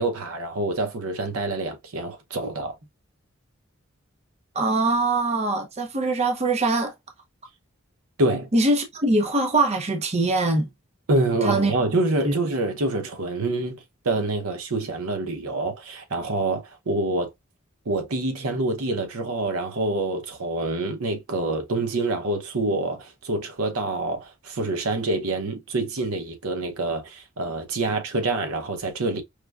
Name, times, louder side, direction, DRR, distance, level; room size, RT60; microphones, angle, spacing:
voice 1, 0.0-2.8 8.2-8.5 11.1-17.3 17.9-29.2, right 2 dB, 85° right, 0.8 m, -26 dB
voice 2, 4.5-6.9 8.5-10.7 11.4-11.7 12.2-12.3, right 2 dB, 30° right, 0.5 m, -22 dB
4.8 x 2.1 x 2.3 m
head